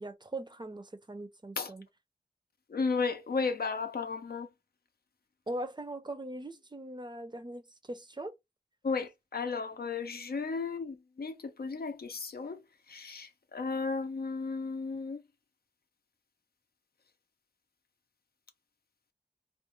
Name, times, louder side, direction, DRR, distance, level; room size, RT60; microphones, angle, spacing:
voice 1, 0.0-1.9 5.5-8.3, right 1 dB, 30° right, 0.5 m, -40 dB
voice 2, 2.7-4.5 8.8-12.6 12.9-15.2, left 4 dB, 80° left, 0.5 m, -34 dB
2.3 x 2.0 x 2.9 m
wide cardioid pair, 45°, 16 cm